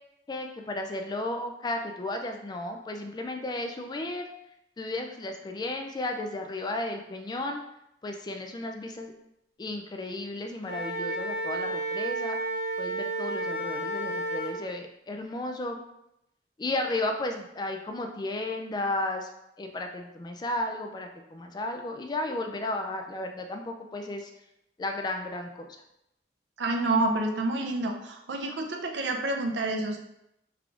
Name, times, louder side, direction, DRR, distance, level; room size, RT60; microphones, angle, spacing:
voice 1, 0.3-4.3 4.8-7.6 8.0-9.1 9.6-12.4 12.8-15.8 16.6-19.3 19.6-24.3 24.8-25.7, left 2 dB, 25° left, 4 dB, 0.3 m, -33 dB
Wind instrument woodwind instrument, 10.6-14.5, right 2 dB, 40° left, 1.0 m, -31 dB
voice 2, 26.6-30.0, right 2 dB, 85° right, 3 dB, 0.5 m, -28 dB
3.5 x 2.4 x 3.4 m, 0.82 s
head